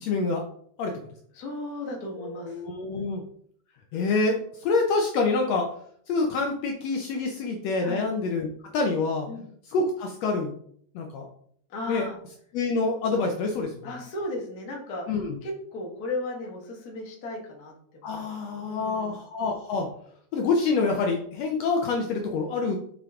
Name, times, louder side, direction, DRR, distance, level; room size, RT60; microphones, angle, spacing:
voice 1, 0.0-0.4 0.8-0.9 2.5-3.2 3.9-5.7 6.1-8.5 8.7-9.3 9.7-10.5 11.0-11.3 11.9-12.1 12.5-13.9 15.1-15.4 18.0-19.9 20.3-22.8, left 3 dB, 70° left, 2 dB, 1.8 m, -26 dB
voice 2, 1.3-2.6 7.8-8.1 9.3-9.4 11.7-12.2 13.8-19.2, left 2 dB, 40° left, -1 dB, 1.5 m, -36 dB
6.0 x 5.5 x 3.6 m, 0.63 s
omnidirectional pair, 3.4 m